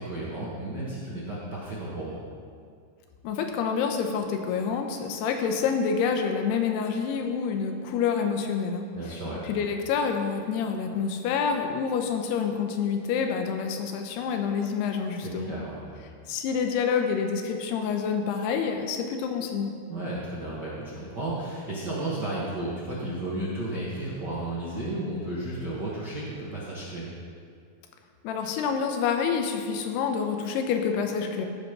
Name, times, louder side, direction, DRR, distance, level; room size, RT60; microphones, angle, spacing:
voice 1, 0.0-2.2 8.9-9.4 15.2-16.0 19.9-27.1, right 1 dB, 65° right, -8 dB, 1.0 m, -33 dB
voice 2, 3.2-9.2 9.4-15.5 16.3-19.7 28.2-31.5, left 6 dB, 90° left, 4 dB, 2.8 m, -27 dB
15.5 x 5.4 x 5.9 m, 2.2 s
omnidirectional pair, 4.7 m